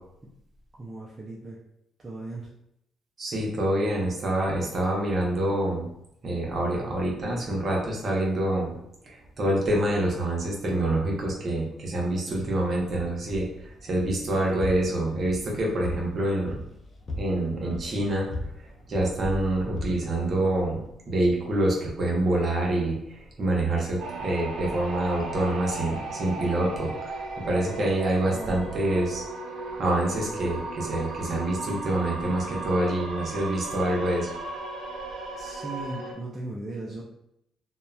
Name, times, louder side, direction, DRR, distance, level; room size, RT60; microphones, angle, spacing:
voice 1, 0.8-1.6 2.0-2.5 28.2-28.6 35.4-37.0, right 2 dB, 25° right, -5 dB, 0.5 m, -37 dB
voice 2, 3.2-5.9 6.2-8.7 9.1-16.6 17.2-18.3 18.9-20.8 21.1-29.2 29.6-34.3, right 1 dB, 50° right, -2 dB, 0.8 m, -26 dB
sound 1, 12.3-21.0, left 2 dB, 40° left, 0.5 m, -39 dB
sound 2, 24.0-36.1, right 3 dB, 80° right, 0.5 m, -36 dB
2.7 x 2.1 x 2.3 m, 0.78 s
cardioid pair, 90°, 0 cm